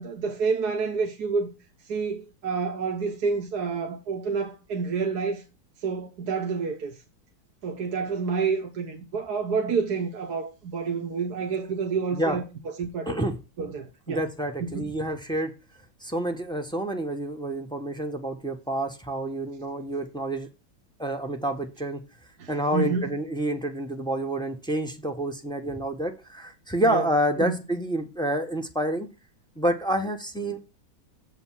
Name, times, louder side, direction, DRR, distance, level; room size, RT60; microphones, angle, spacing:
voice 1, 0.0-1.5 1.9-5.4 5.8-7.0 7.6-12.4 12.8-13.2 13.6-14.3 14.6-14.9 22.4-23.2 26.8-27.1 27.4-27.7, right 5 dB, 55° right, 1.4 m, -29 dB
voice 2, 13.1-13.4 14.1-15.5 16.0-20.5 21.0-22.0 22.5-29.1 29.6-30.6, right 1 dB, 5° left, 0.7 m, -28 dB
7.4 x 5.3 x 7.3 m
omnidirectional pair, 2.2 m